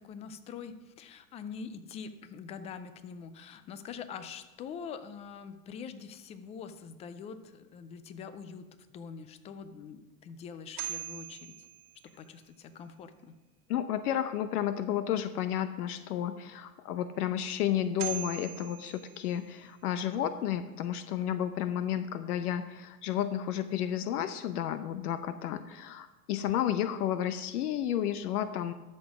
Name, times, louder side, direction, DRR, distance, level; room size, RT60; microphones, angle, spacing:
voice 1, 0.0-8.7 8.9-11.7 12.2-13.4, left 6 dB, 15° left, 12 dB, 0.3 m, -44 dB
sound 1, 10.5-12.7 17.6-17.7 18.0-19.9, right 14 dB, 75° right, 1.5 m, -42 dB
voice 2, 13.7-28.7, left 10 dB, 70° left, 12 dB, 0.8 m, -32 dB
13.0 x 6.3 x 4.9 m, 1.1 s
hypercardioid pair, 115°, 47 cm